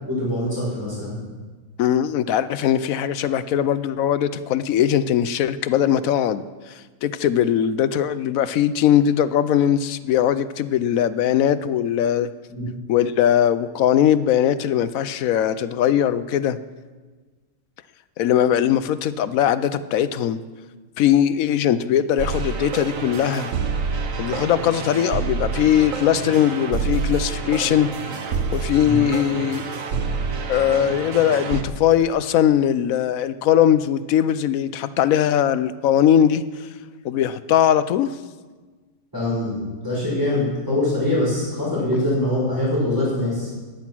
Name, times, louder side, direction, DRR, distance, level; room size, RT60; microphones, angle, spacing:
voice 1, 0.1-1.2 28.8-29.0 39.1-43.5, left 1 dB, 15° right, -6 dB, 5.5 m, -23 dB
voice 2, 1.8-6.4 6.7-12.3 12.9-16.6 18.2-20.4 21.0-23.5 24.2-27.9 28.5-29.6 30.5-36.4 37.0-38.1, left 10 dB, 75° left, 14 dB, 1.0 m, -20 dB
sound 1, 22.2-31.6, right 5 dB, 65° right, 1.3 m, -27 dB
14.0 x 10.0 x 6.1 m, 1.4 s
omnidirectional pair, 1.5 m